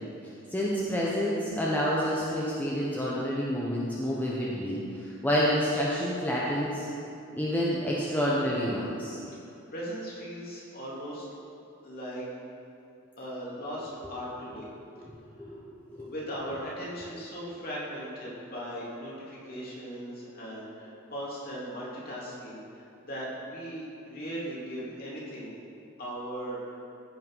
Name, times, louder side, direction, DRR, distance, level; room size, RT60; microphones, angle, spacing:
voice 1, 0.5-6.8 7.4-9.2 14.8-15.7 16.0-16.1, equal, 10° left, -6 dB, 1.0 m, -29 dB
voice 2, 9.3-11.3 11.8-12.3 13.2-14.7 15.4-15.6 15.9-25.5 26.0-26.8, equal, 45° left, -6 dB, 2.7 m, -38 dB
14.5 x 5.6 x 5.6 m, 2.6 s
head